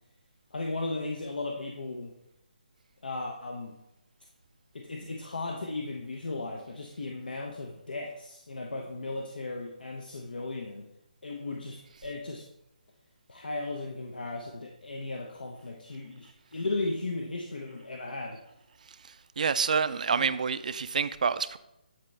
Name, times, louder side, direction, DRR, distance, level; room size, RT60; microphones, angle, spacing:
voice 1, 0.5-2.1 3.0-3.8 4.7-10.9 11.2-12.4 13.3-18.4 20.1-20.3, left 2 dB, 75° left, 0.7 m, -36 dB
voice 2, 19.4-21.6, right 6 dB, 55° right, 0.4 m, -27 dB
8.7 x 4.2 x 3.2 m
figure-of-eight pair, 155°, 5 cm